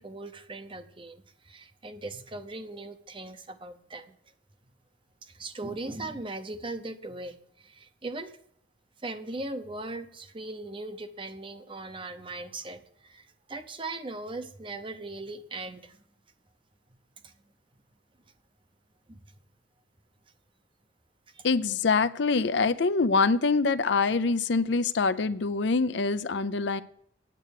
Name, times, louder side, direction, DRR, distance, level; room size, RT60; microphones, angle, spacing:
voice 1, 0.0-4.1 5.2-8.4 9.0-16.0 17.2-17.3 19.1-19.2 21.3-21.5, right 2 dB, 25° right, 0.7 m, -39 dB
voice 2, 21.4-26.8, left 4 dB, 65° left, 0.5 m, -25 dB
9.1 x 8.0 x 6.6 m
head